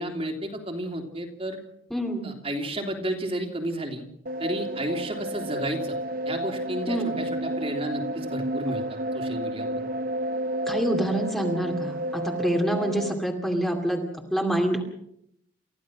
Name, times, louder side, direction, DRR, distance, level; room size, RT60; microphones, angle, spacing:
voice 1, 0.0-1.6 2.2-4.0 4.4-6.0 6.3-9.9, right 1 dB, 30° right, 3 dB, 3.1 m, -32 dB
voice 2, 1.9-2.3 6.9-7.1 10.7-14.0 14.3-14.8, right 1 dB, ahead, 1 dB, 2.5 m, -26 dB
sound 1, 4.3-13.1, right 1 dB, 45° right, 0.8 m, -31 dB
29.5 x 15.0 x 6.4 m, 0.74 s
head